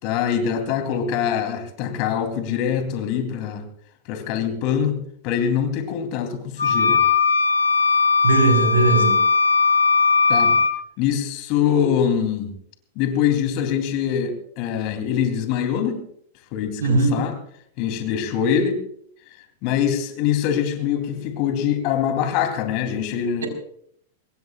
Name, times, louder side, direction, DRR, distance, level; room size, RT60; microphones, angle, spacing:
voice 1, 0.0-3.6 4.1-7.0 10.3-10.6 11.0-12.5 12.9-16.0 16.5-17.3 17.8-18.8 19.6-23.5, left 8 dB, 45° left, 6 dB, 3.3 m, -23 dB
sound 1, 6.6-10.7, left 4 dB, 85° left, 1.3 m, -18 dB
voice 2, 8.2-9.2 16.8-17.1, right 3 dB, 75° right, 4 dB, 4.6 m, -18 dB
25.0 x 21.5 x 2.5 m, 0.66 s
figure-of-eight pair, 95°, 0 cm